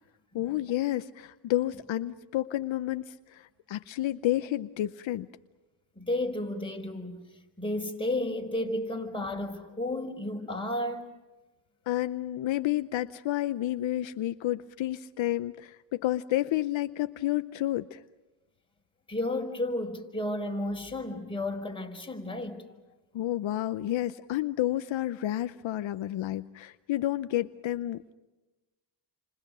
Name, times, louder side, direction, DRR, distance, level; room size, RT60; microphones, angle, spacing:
voice 1, 0.3-5.3 11.9-18.0 23.1-28.1, left 14 dB, 70° left, 0.8 m, -30 dB
voice 2, 5.9-7.2 7.6-11.1 19.1-22.6, left 1 dB, 10° left, 4.8 m, -32 dB
29.5 x 26.5 x 6.2 m
cardioid pair, 90°, 47 cm